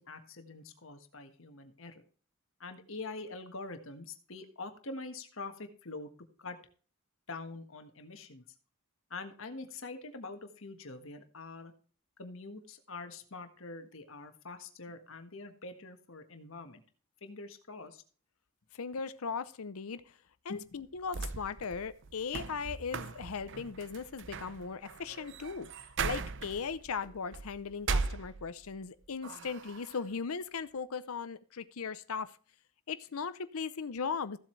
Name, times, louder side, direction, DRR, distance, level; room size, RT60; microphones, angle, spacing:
voice 1, 0.0-2.0 2.6-6.1 6.4-6.6 7.3-8.4 9.1-11.7 12.2-16.8 17.2-18.0 20.5-20.8, left 3 dB, 65° left, 1.5 m, -45 dB
voice 2, 18.7-20.0 20.4-25.7 26.0-32.3 32.9-34.4, left 5 dB, 80° left, 0.6 m, -38 dB
sound 1, 20.8-28.8 29.2-30.0, right 4 dB, 55° right, 0.7 m, -39 dB
15.0 x 7.6 x 3.2 m
head